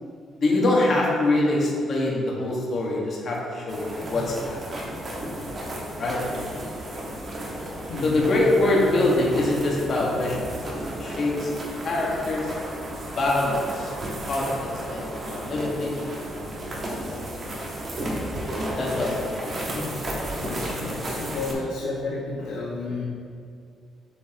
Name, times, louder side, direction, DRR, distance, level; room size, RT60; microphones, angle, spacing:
voice 1, 0.4-4.6 5.9-6.2 8.0-10.4 11.0-11.5 11.8-12.5 13.2-13.9 14.3-16.2 16.8-17.2 18.8-19.4 19.7-19.8, left 2 dB, 50° left, -4 dB, 1.5 m, -24 dB
sound 1, 3.7-21.5, right 1 dB, 40° right, 1.5 m, -33 dB
voice 2, 7.9-8.4 20.4-23.0, left 3 dB, 90° left, -5 dB, 1.2 m, -31 dB
7.8 x 5.3 x 2.9 m, 2.3 s
cardioid pair, 90°, 0 cm